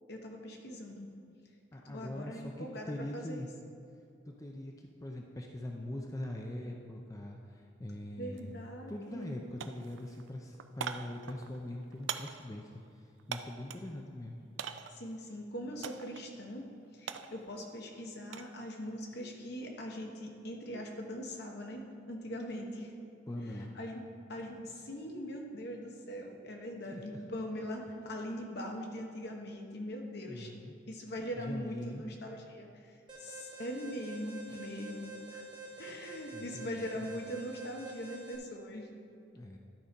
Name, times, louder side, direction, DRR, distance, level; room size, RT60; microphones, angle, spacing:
voice 1, 0.1-1.1 1.8-3.5 8.2-9.3 14.9-16.7 16.9-22.9 23.7-24.0 24.3-30.5 30.9-35.5 35.8-38.9, equal, 60° left, 1 dB, 1.1 m, -41 dB
voice 2, 1.7-3.5 4.3-8.5 8.9-12.7 13.3-14.4 23.3-23.7 26.9-27.2 30.3-30.7 31.4-32.0 34.5-34.6 35.6-35.9 36.3-37.1 39.3-39.6, left 1 dB, 20° left, 1 dB, 0.5 m, -42 dB
sound 1, 8.3-8.5 8.8-9.3 9.6-13.9 14.6-15.1 15.8-16.3 16.6-18.6 18.9-19.3, right 8 dB, 80° right, 0.4 m, -43 dB
Alarm, 33.1-38.4, right 2 dB, 25° right, 1.2 m, -47 dB
12.0 x 4.3 x 5.2 m, 2.5 s
head